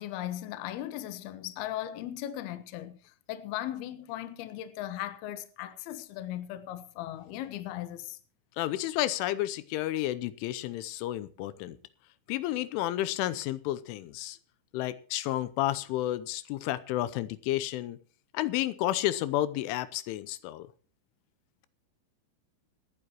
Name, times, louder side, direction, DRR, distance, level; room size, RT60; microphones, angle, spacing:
voice 1, 0.0-8.2, left 13 dB, 70° left, 2.7 m, -38 dB
voice 2, 8.6-11.8 12.3-14.4 14.7-18.0 18.3-20.7, left 14 dB, 85° left, 3.3 m, -31 dB
26.5 x 10.0 x 2.9 m
omnidirectional pair, 5.5 m